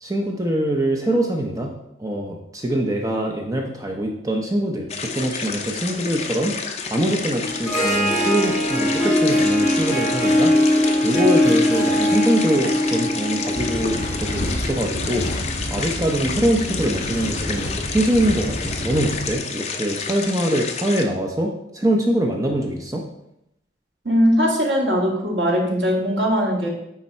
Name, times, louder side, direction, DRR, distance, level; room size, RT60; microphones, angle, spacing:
voice 1, 0.0-1.7 2.0-6.5 6.9-15.3 15.7-23.0, right 1 dB, 20° right, 1 dB, 0.6 m, -23 dB
sound 1, 4.9-21.0, left 5 dB, 35° left, 0.6 m, -30 dB
Harp, 7.4-14.5, left 1 dB, ahead, 2.4 m, -20 dB
sound 2, 13.5-19.4, left 1 dB, 60° left, 1.8 m, -29 dB
voice 2, 24.0-26.7, equal, 75° right, -3 dB, 2.0 m, -20 dB
9.8 x 3.6 x 4.3 m, 0.82 s
head